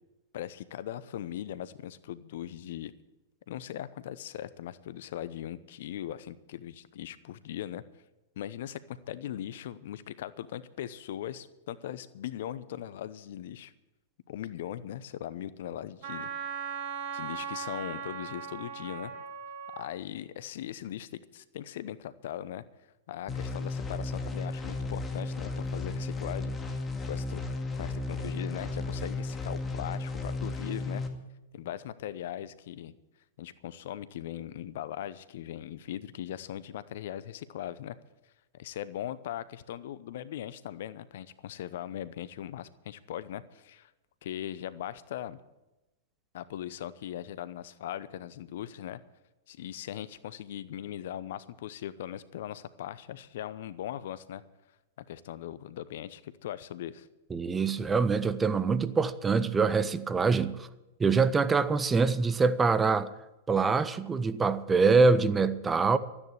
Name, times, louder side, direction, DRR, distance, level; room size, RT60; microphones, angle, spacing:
voice 1, 0.3-2.9 3.5-7.8 8.4-13.7 14.3-16.3 17.1-19.1 19.7-22.6 23.1-26.5 27.0-27.4 27.7-31.0 31.5-33.0 33.4-38.0 38.5-43.9 44.2-45.4 46.3-49.0 49.5-54.4 55.1-57.1, left 11 dB, 60° left, 0.7 m, -39 dB
Wind instrument woodwind instrument, 16.0-19.9, right 7 dB, 55° right, 2.2 m, -38 dB
sound 1, 23.3-31.1, left 3 dB, 15° left, 2.1 m, -34 dB
voice 2, 57.3-60.7 61.0-63.1 63.5-66.0, right 4 dB, 15° right, 0.8 m, -24 dB
13.0 x 9.8 x 8.5 m
figure-of-eight pair, 105°, 0 cm